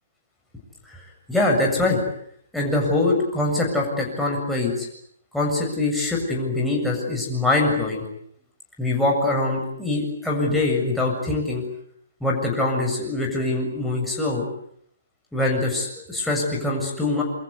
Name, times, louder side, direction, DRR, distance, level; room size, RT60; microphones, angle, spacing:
voice 1, 1.3-2.0 2.5-4.9 5.3-8.0 8.8-11.6 12.2-14.5 15.3-17.2, left 2 dB, ahead, -3 dB, 7.3 m, -23 dB
27.5 x 24.0 x 8.2 m, 0.69 s
figure-of-eight pair, 130°, 0 cm